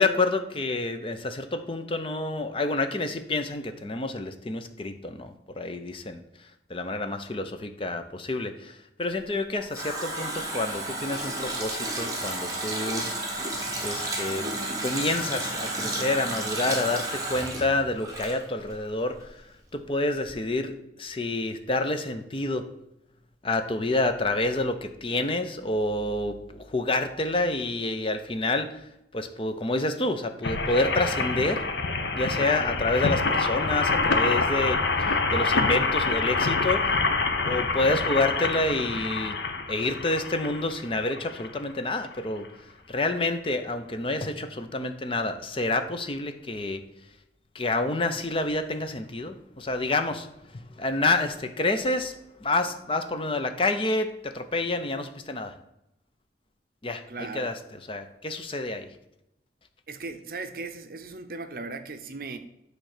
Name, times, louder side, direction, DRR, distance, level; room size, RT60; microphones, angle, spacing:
voice 1, 0.0-6.2 6.7-13.1 13.8-14.5 14.8-19.4 19.7-22.7 23.4-28.8 29.1-31.6 32.2-37.0 37.4-39.4 39.7-46.8 47.5-50.3 50.5-52.1 52.4-55.5 56.8-58.9, left 2 dB, 30° left, 8 dB, 0.6 m, -28 dB
Water tap faucet, 9.2-18.9 19.1-19.2, right 2 dB, 20° right, 1.3 m, -32 dB
sound 1, 30.4-41.6 42.2-42.3 42.4-42.5, left 3 dB, 85° left, 0.9 m, -26 dB
voice 2, 32.3-32.7 57.1-57.6 59.9-62.4, right 3 dB, 50° right, 8 dB, 0.7 m, -38 dB
8.8 x 3.3 x 6.6 m, 0.85 s
head